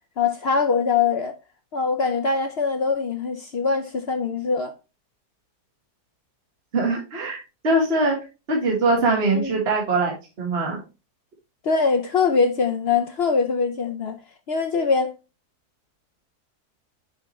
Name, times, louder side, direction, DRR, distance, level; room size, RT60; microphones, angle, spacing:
voice 1, 0.2-1.3 1.7-4.7 9.3-9.6 11.6-14.2 14.5-15.1, left 5 dB, 65° left, 0.6 m, -22 dB
voice 2, 6.7-8.2 8.5-10.8, right 2 dB, 40° right, 1.7 m, -22 dB
6.8 x 4.7 x 3.1 m
omnidirectional pair, 1.7 m